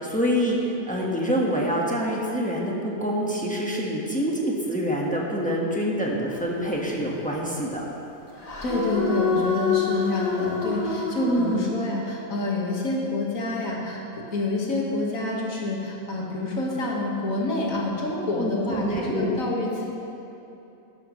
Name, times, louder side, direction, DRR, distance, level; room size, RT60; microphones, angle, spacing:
voice 1, 0.0-7.9 11.2-11.7 18.4-19.4, equal, 5° left, -3 dB, 1.3 m, -26 dB
sound 1, 6.3-7.0 8.4-11.6, left 4 dB, 30° left, 1.1 m, -27 dB
voice 2, 8.6-19.8, left 2 dB, 75° left, -3 dB, 2.1 m, -28 dB
12.5 x 12.0 x 3.2 m, 2.9 s
omnidirectional pair, 1.4 m